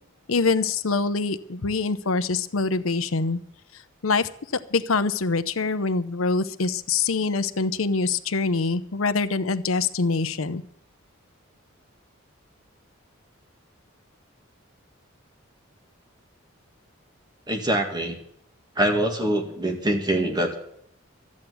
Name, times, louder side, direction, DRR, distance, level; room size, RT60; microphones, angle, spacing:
voice 1, 0.3-3.4 4.0-10.6, left 4 dB, 80° left, 12 dB, 0.8 m, -24 dB
voice 2, 17.5-18.2 18.8-20.5, right 1 dB, 20° right, 4 dB, 2.1 m, -24 dB
12.5 x 8.5 x 9.3 m, 0.69 s
head